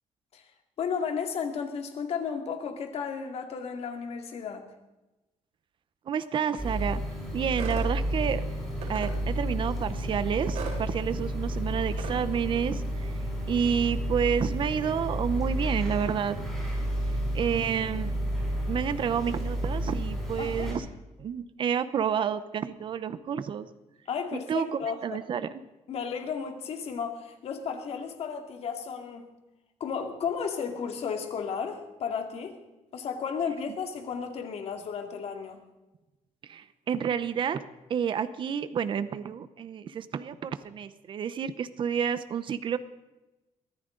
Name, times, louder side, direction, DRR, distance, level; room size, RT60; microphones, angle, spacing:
voice 1, 0.8-4.7 20.4-20.7 24.1-25.0 25.9-29.3 29.8-32.6 32.9-35.6, left 6 dB, 55° left, 5 dB, 2.3 m, -33 dB
voice 2, 6.1-7.0 7.3-8.4 8.9-13.2 13.5-16.4 17.1-18.1 18.7-20.9 21.2-23.7 24.3-25.5 36.4-42.8, right 7 dB, 45° right, 13 dB, 0.8 m, -30 dB
sound 1, 6.6-20.7, equal, ahead, 7.5 m, -31 dB
sound 2, 7.6-7.9 8.8-9.1 10.5-10.8 12.0-12.2, right 6 dB, 75° right, 4.2 m, -36 dB
23.0 x 15.0 x 3.9 m, 1.0 s
cardioid pair, 165°, 12 cm